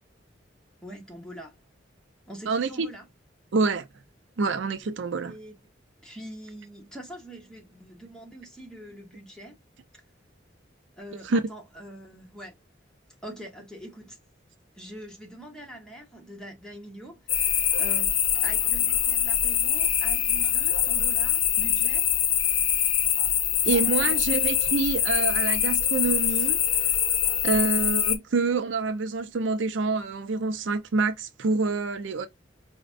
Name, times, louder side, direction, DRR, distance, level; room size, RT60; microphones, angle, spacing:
voice 1, 0.8-1.6 2.3-3.1 5.2-5.5 6.0-9.5 11.0-12.6 13.2-14.2 14.7-22.1 24.0-24.6, right 1 dB, 5° left, 1.1 m, -44 dB
voice 2, 2.5-2.9 3.5-3.9 4.4-5.4 11.2-11.4 23.6-26.6 27.4-32.3, right 4 dB, 70° right, 0.5 m, -26 dB
sound 1, 17.3-28.2, left 10 dB, 90° left, 0.6 m, -24 dB
5.0 x 2.1 x 2.5 m
head